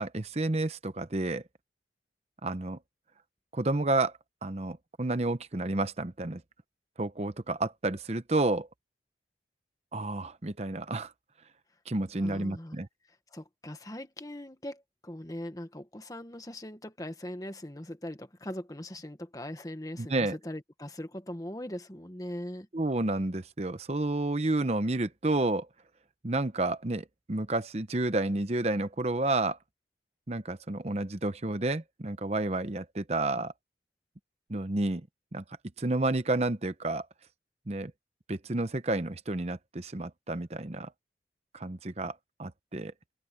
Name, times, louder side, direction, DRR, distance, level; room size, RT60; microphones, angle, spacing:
voice 1, 0.0-1.4 2.4-2.8 3.5-4.1 4.4-6.4 7.0-8.7 9.9-11.1 11.9-12.9 20.0-20.4 22.7-25.7 26.2-29.6 30.3-33.5 34.5-35.1 35.3-35.4 35.8-37.1 37.7-37.9 38.3-40.9 41.5-42.9, right 2 dB, 35° right, 0.8 m, -30 dB
voice 2, 12.1-12.8 13.3-22.7, left 1 dB, 20° left, 1.4 m, -40 dB
open air
head